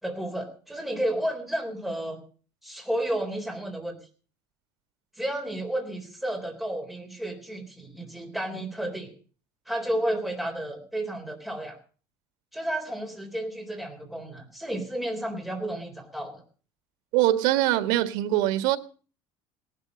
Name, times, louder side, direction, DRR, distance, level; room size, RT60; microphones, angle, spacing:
voice 1, 0.0-2.2 2.6-4.0 5.2-9.1 9.7-11.8 12.5-16.4, right 1 dB, ahead, 3.9 m, -32 dB
voice 2, 17.1-18.8, right 14 dB, 90° right, 1.7 m, -23 dB
18.0 x 12.0 x 6.4 m
cardioid pair, 175°, 11 cm